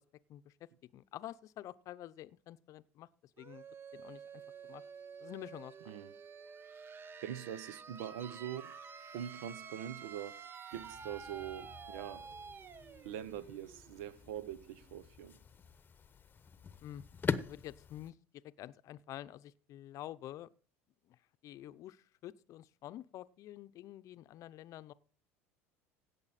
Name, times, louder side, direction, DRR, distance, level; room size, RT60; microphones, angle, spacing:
voice 1, 0.3-3.1 3.4-3.7 3.9-4.4 4.7-4.8 5.2-5.7 16.8-17.0 17.3-18.2 18.4-20.5 21.1-24.9, left 13 dB, 50° left, 0.7 m, -48 dB
sound 1, 3.4-14.9, right 6 dB, 30° right, 0.7 m, -50 dB
voice 2, 7.2-8.8 9.1-10.4 10.7-12.2 13.0-15.4, right 10 dB, 75° right, 0.8 m, -43 dB
sound 2, 10.7-18.1, left 5 dB, 25° left, 0.9 m, -44 dB
17.0 x 6.9 x 4.2 m
hypercardioid pair, 85°, 7 cm